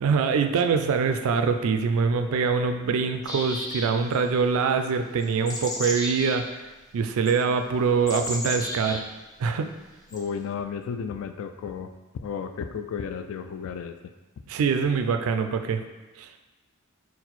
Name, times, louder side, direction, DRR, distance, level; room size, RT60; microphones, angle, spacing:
voice 1, 0.0-6.6 6.9-9.0 9.4-9.7 14.5-15.8 16.2-16.3, right 5 dB, 70° right, 7 dB, 0.3 m, -24 dB
sound 1, 3.2-4.2 5.2-6.4 7.3-7.4 8.1-9.0 10.1-10.2, left 1 dB, 20° left, 0.5 m, -33 dB
voice 2, 10.1-11.9 12.2-14.0, left 6 dB, 65° left, 8 dB, 0.3 m, -33 dB
4.4 x 2.1 x 4.0 m, 1.2 s
head